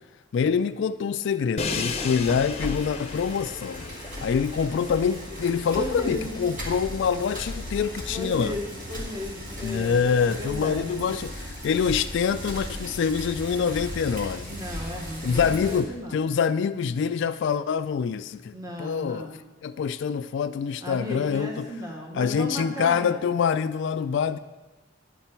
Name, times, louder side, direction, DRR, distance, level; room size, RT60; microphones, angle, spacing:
voice 1, 0.3-3.9 4.2-8.6 9.6-14.6 15.2-19.3 19.6-21.7 22.1-24.4, left 6 dB, 65° left, 11 dB, 0.3 m, -25 dB
Crash cymbal, 1.6-7.5, left 5 dB, 35° left, 0.7 m, -36 dB
voice 2, 1.7-2.2 5.8-6.4 8.1-10.9 14.5-16.2 18.5-19.4 20.8-23.4, equal, 20° right, 0 dB, 0.9 m, -35 dB
Bicycle, 1.7-15.8, equal, 45° right, 2.2 m, -37 dB
10.5 x 8.0 x 4.4 m, 1.2 s
head